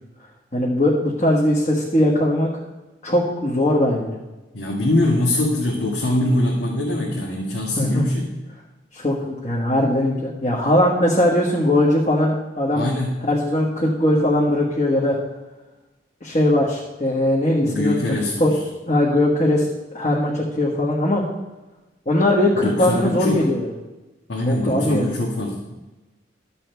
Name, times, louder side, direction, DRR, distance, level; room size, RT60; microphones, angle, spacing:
voice 1, 0.5-2.5 3.0-4.2 7.8-8.1 8.9-12.8 13.2-15.2 16.2-18.5 18.9-19.7 19.9-21.2 22.0-23.7 24.4-25.1, left 1 dB, 40° left, -3 dB, 1.4 m, -20 dB
voice 2, 4.5-8.3 12.7-13.2 17.6-18.6 22.6-23.4 24.3-25.6, left 1 dB, 80° left, -3 dB, 1.7 m, -22 dB
12.5 x 7.6 x 4.5 m, 1.1 s
head